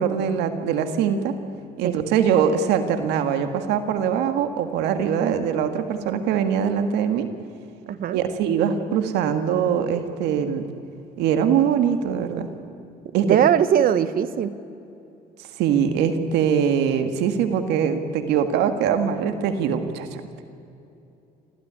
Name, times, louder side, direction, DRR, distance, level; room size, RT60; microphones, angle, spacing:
voice 1, 0.0-1.4 1.8-7.3 8.1-10.7 11.2-12.5 13.1-13.4 15.6-20.2, right 8 dB, 90° right, 8 dB, 1.8 m, -22 dB
voice 2, 7.9-8.2 13.2-14.6, right 9 dB, 60° right, 14 dB, 1.3 m, -20 dB
27.0 x 15.5 x 10.0 m, 2.7 s
cardioid pair, 110°, 17 cm